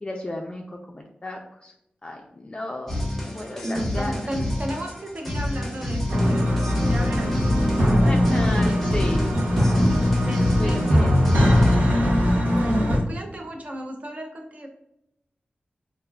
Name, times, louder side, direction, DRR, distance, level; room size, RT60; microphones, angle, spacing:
voice 1, 0.0-1.7 2.0-3.0 3.2-4.2 8.1-9.4 10.6-11.2, left 1 dB, 30° left, 1 dB, 0.3 m, -33 dB
sound 1, 2.9-11.8, left 1 dB, 5° left, 0.7 m, -30 dB
voice 2, 3.6-8.8 10.3-11.1 12.5-14.7, right 1 dB, 45° right, 2 dB, 0.6 m, -33 dB
sound 2, 6.1-13.0, left 1 dB, 85° right, 0.8 m, -20 dB
3.5 x 2.3 x 2.2 m, 0.82 s
wide cardioid pair, 70°, 3 cm